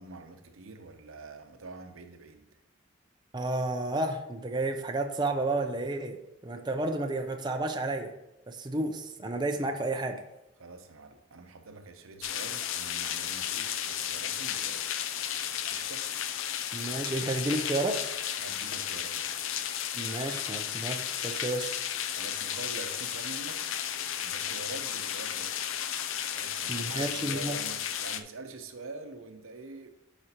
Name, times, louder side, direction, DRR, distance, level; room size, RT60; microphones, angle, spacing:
voice 1, 0.0-2.6 10.6-14.9 15.7-16.1 18.4-19.5 22.1-23.8 24.2-25.6 26.3-29.9, right 3 dB, 85° right, 0.8 m, -45 dB
voice 2, 3.3-6.2 6.4-8.1 8.5-10.2 16.7-18.1 19.9-21.7 26.7-27.6, right 2 dB, 20° right, 0.4 m, -31 dB
sound 1, 12.2-28.2, left 10 dB, 75° left, 0.5 m, -34 dB
10.5 x 5.0 x 2.9 m
head